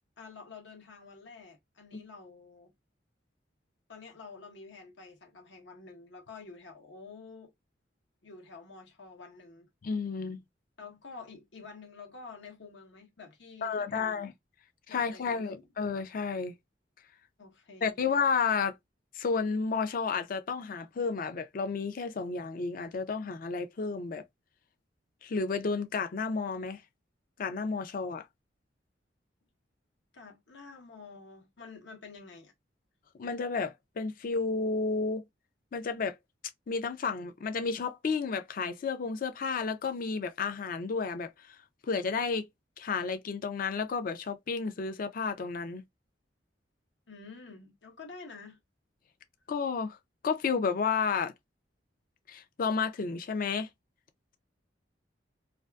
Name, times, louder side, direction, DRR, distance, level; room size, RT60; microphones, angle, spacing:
voice 1, 0.2-2.7 3.9-7.5 8.2-9.7 10.8-14.3 14.9-15.7 17.4-18.0 30.1-32.5 47.1-48.6, left 4 dB, 75° left, 1.0 m, -49 dB
voice 2, 9.8-10.4 13.6-14.3 14.9-16.5 17.8-18.7 19.1-24.2 25.2-26.8 27.4-28.3 33.2-35.2 35.7-36.2 36.7-41.6 41.8-42.5 42.8-45.8 49.5-50.0 50.2-51.3 52.3-53.7, left 5 dB, 50° left, 0.4 m, -31 dB
2.5 x 2.4 x 2.2 m
head